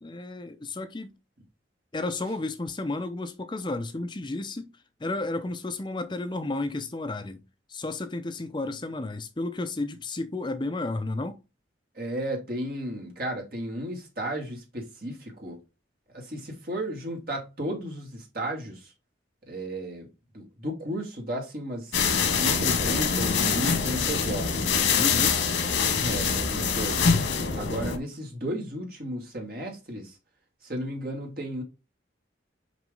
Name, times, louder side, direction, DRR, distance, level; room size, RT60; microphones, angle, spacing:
voice 1, 0.0-1.1 1.9-4.7 5.0-7.4 7.7-11.4 24.9-25.5, left 2 dB, 25° left, 0.5 m, -32 dB
voice 2, 11.9-15.6 16.1-18.9 19.5-20.1 20.3-22.0 22.4-24.8 25.1-25.4 26.0-27.1 27.5-30.2 30.6-31.6, right 1 dB, 50° right, 2.6 m, -34 dB
sound 1, 21.9-28.0, left 5 dB, 85° left, 1.5 m, -24 dB
6.2 x 5.1 x 3.8 m
head